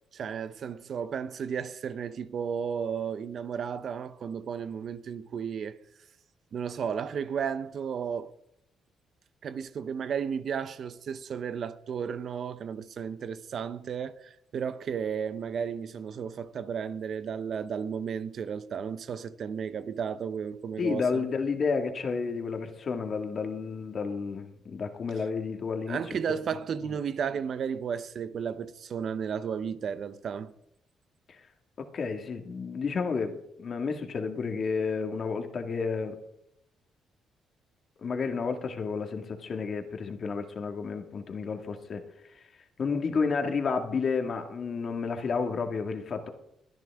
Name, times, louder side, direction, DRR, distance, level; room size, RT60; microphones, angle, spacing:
voice 1, 0.1-5.8 6.5-8.3 9.4-21.3 25.9-30.5, right 7 dB, 60° right, 0.7 m, -33 dB
voice 2, 20.8-26.0 26.3-26.4 26.8-26.9 31.3-31.4 31.8-36.2 38.0-42.0 42.3-42.4 42.8-46.3, left 5 dB, 50° left, 1.9 m, -31 dB
23.0 x 10.0 x 3.6 m
cardioid pair, 90°, 0 cm